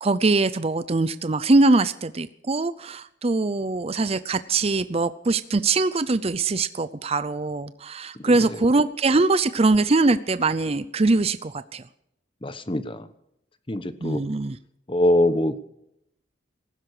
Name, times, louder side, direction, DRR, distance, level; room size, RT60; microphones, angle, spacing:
voice 1, 0.0-11.8 14.0-14.6, right 3 dB, 35° right, 14 dB, 0.5 m, -22 dB
voice 2, 12.4-13.1 13.7-14.2 14.9-15.7, left 1 dB, 25° left, 12 dB, 1.1 m, -23 dB
18.5 x 15.5 x 4.9 m, 0.79 s
head